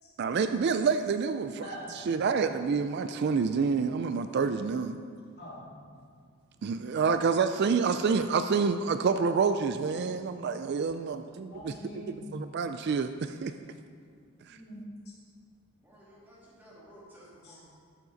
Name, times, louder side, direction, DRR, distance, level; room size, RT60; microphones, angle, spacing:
voice 1, 0.2-1.7 2.1-5.0 6.6-11.7 12.3-13.5 14.5-14.6, right 5 dB, 50° right, 9 dB, 0.3 m, -28 dB
voice 2, 1.6-2.1 5.4-5.7 11.5-12.5 14.5-15.1 17.4-17.6, equal, 50° left, -6 dB, 2.5 m, -44 dB
voice 3, 15.8-17.7, equal, 10° right, -7 dB, 2.3 m, -54 dB
13.0 x 7.4 x 4.0 m, 2.2 s
head